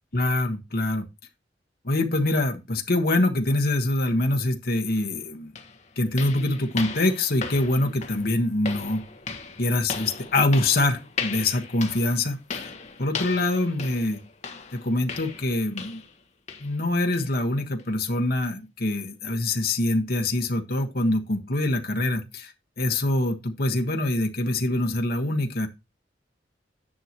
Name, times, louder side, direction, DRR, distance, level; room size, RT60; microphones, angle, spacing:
voice 1, 0.1-1.1 1.8-5.5 6.0-9.0 9.6-12.7 13.0-14.2 14.7-16.0 16.6-22.5 22.8-25.7, left 2 dB, 55° left, 1.4 m, -24 dB
sound 1, 5.0-5.1 5.6-16.2 16.5-16.8 17.1-17.3 17.8-17.9 18.4-18.5, left 5 dB, 40° left, 1.4 m, -37 dB
10.0 x 6.6 x 3.0 m
head